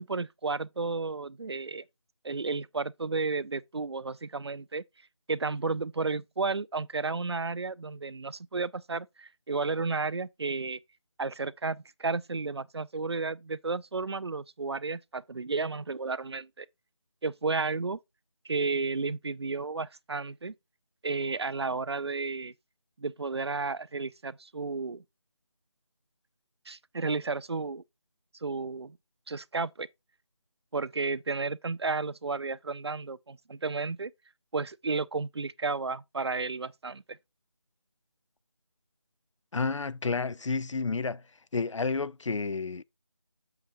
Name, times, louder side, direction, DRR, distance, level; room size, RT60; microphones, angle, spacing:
voice 1, 0.0-1.8 2.2-4.8 5.3-10.8 11.2-16.7 17.2-18.0 18.4-20.5 21.0-22.5 23.0-25.0 26.7-27.8 28.4-29.0 29.3-29.9 30.7-34.1 34.5-37.2, right 4 dB, 60° right, 0.4 m, -32 dB
voice 2, 39.5-41.2 41.5-42.8, left 4 dB, 80° left, 0.5 m, -30 dB
7.8 x 7.0 x 2.6 m
figure-of-eight pair, 180°, 16 cm